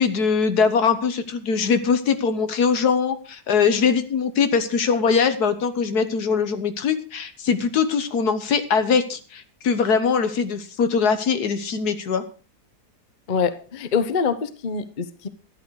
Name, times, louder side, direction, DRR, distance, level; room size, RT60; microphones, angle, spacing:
voice 1, 0.0-12.2, left 6 dB, 70° left, 10 dB, 1.7 m, -22 dB
voice 2, 13.3-15.3, left 6 dB, 35° left, 12 dB, 0.8 m, -25 dB
13.0 x 10.5 x 4.8 m, 0.37 s
omnidirectional pair, 1.7 m